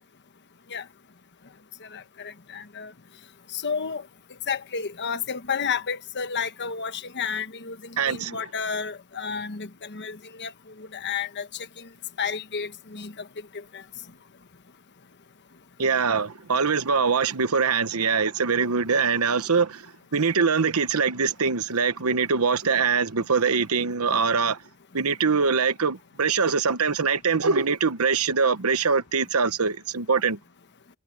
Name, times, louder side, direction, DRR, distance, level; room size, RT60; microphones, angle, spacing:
voice 1, 1.8-2.9 3.5-4.0 4.5-10.5 10.8-11.5 11.8-11.9 12.2-13.1 13.7-13.8, left 6 dB, 55° left, 1.1 m, -31 dB
voice 2, 8.0-8.4 15.8-24.6 24.9-30.4, right 5 dB, 80° right, 1.0 m, -23 dB
head